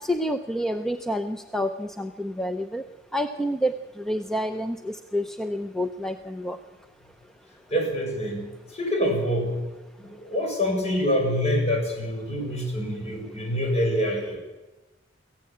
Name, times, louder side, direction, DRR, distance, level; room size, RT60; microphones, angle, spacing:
voice 1, 0.0-2.8 3.1-6.6, equal, 5° left, 6 dB, 0.6 m, -28 dB
voice 2, 7.7-8.5 8.7-9.5 10.0-14.4, equal, 35° left, 1 dB, 7.1 m, -26 dB
23.0 x 16.0 x 8.6 m, 1.1 s
head